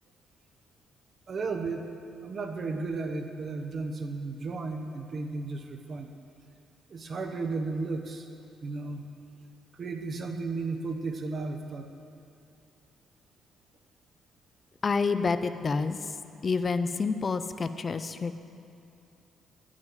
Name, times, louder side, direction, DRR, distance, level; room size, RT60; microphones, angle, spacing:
voice 1, 1.3-6.1 6.9-8.3 8.6-9.0 9.7-11.9, right 3 dB, 45° right, 5 dB, 1.0 m, -34 dB
voice 2, 14.8-16.0 16.4-18.4, left 4 dB, 40° left, 11 dB, 0.5 m, -28 dB
8.9 x 6.3 x 7.5 m, 2.7 s
cardioid pair, 90°, 0 cm